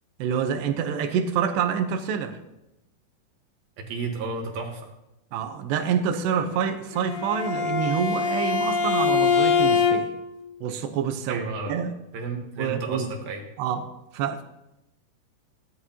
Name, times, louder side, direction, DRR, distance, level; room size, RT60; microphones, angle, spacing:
voice 1, 0.2-2.4 5.3-10.1 10.6-11.9 12.6-13.1 13.6-13.9 14.1-14.4, right 7 dB, 85° right, 6 dB, 3.1 m, -27 dB
voice 2, 3.8-4.9 11.3-11.8 12.1-13.4, right 3 dB, 70° right, 2 dB, 2.9 m, -32 dB
Bowed string instrument, 6.9-10.3, left 5 dB, 75° left, 2.8 m, -23 dB
18.0 x 11.0 x 2.9 m, 0.92 s
omnidirectional pair, 4.7 m